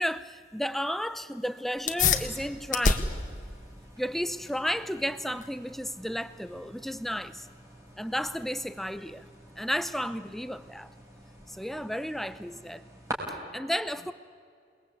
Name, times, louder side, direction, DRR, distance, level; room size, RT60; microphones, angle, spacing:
voice 1, 0.0-3.1 4.0-7.5 8.0-9.2 9.6-10.9 11.5-12.8 13.3-14.1, equal, ahead, 0.7 m, -33 dB
sound 1, 1.7-11.8, left 4 dB, 45° left, 1.8 m, -34 dB
sound 2, 1.9-13.1, right 1 dB, 15° right, 5.3 m, -47 dB
28.5 x 21.0 x 8.5 m
head